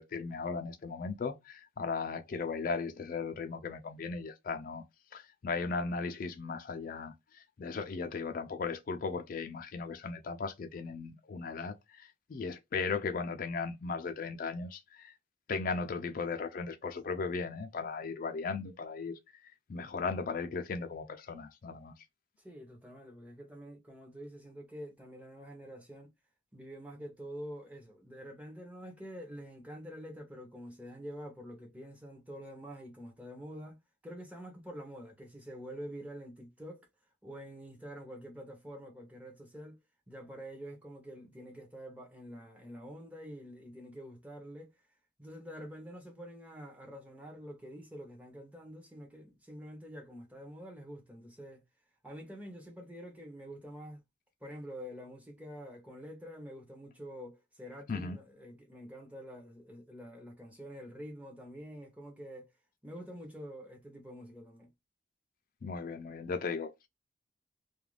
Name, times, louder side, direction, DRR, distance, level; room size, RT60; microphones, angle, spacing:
voice 1, 0.0-4.9 5.1-15.2 15.5-21.9 57.9-58.2 65.6-66.9, left 4 dB, 45° left, 0.3 m, -37 dB
voice 2, 22.4-26.1 26.5-36.9 37.2-39.8 40.1-44.8 45.2-51.6 52.0-54.0 54.4-62.5 62.8-64.7, equal, 10° right, 0.6 m, -47 dB
2.4 x 2.2 x 3.1 m
head